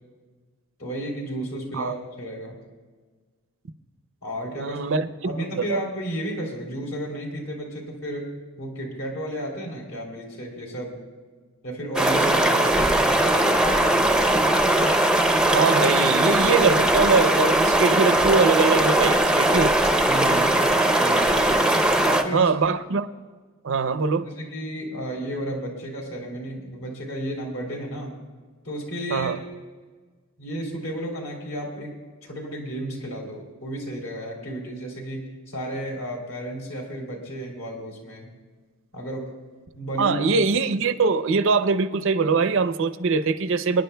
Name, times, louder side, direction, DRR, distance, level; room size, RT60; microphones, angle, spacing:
voice 1, 0.8-2.6 4.2-4.8 5.2-11.0 11.6-14.4 20.1-21.4 22.0-22.5 24.2-28.2 28.6-29.4 30.4-31.9 32.2-38.3 38.9-39.3 39.7-40.2, right 1 dB, 65° left, 3.1 m, -33 dB
voice 2, 4.6-5.8 15.5-19.8 22.3-23.1 23.6-24.3 29.1-29.4 40.0-43.8, right 4 dB, 60° right, 0.5 m, -22 dB
sound 1, 11.9-22.2, right 1 dB, 5° right, 0.6 m, -20 dB
25.5 x 10.5 x 2.2 m
head